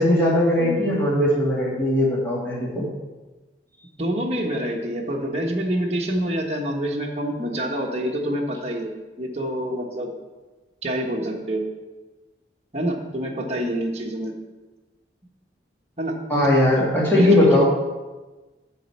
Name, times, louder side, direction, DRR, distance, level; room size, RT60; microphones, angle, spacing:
voice 1, 0.0-2.9 16.3-17.7, left 1 dB, 10° left, -6 dB, 2.6 m, -19 dB
voice 2, 4.0-10.1 10.8-11.7 12.7-14.4 16.0-16.2 17.1-17.7, right 1 dB, 35° right, -1 dB, 1.3 m, -27 dB
9.8 x 4.3 x 7.2 m, 1.2 s
head